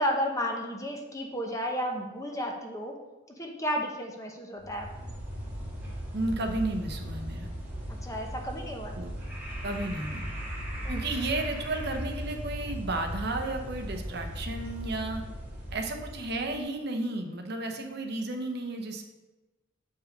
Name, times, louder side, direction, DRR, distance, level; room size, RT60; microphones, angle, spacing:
voice 1, 0.0-2.9 3.4-5.1 8.0-9.0 10.8-11.0, equal, 15° left, 2 dB, 0.9 m, -32 dB
sound 1, 4.6-16.5, equal, 10° right, 2.0 m, -37 dB
voice 2, 6.1-7.5 9.0-9.1 9.6-10.2 10.9-15.2 15.7-19.0, right 2 dB, 55° right, 4 dB, 0.9 m, -33 dB
6.7 x 5.4 x 5.3 m, 1.1 s
head